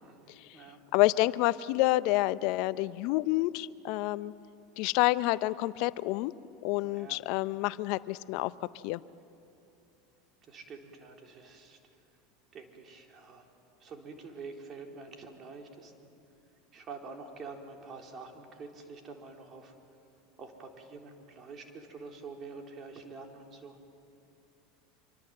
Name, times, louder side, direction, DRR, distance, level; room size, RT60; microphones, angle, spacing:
voice 1, 0.0-0.8 6.8-7.2 10.5-11.8 12.5-13.5 13.8-15.9 16.7-19.7 20.4-23.8, right 4 dB, 35° right, 2 dB, 3.8 m, -47 dB
voice 2, 0.9-4.3 4.8-6.3 6.6-9.0, left 18 dB, 60° left, 16 dB, 0.7 m, -28 dB
26.0 x 24.5 x 7.8 m, 2.6 s
hypercardioid pair, 85°, 0 cm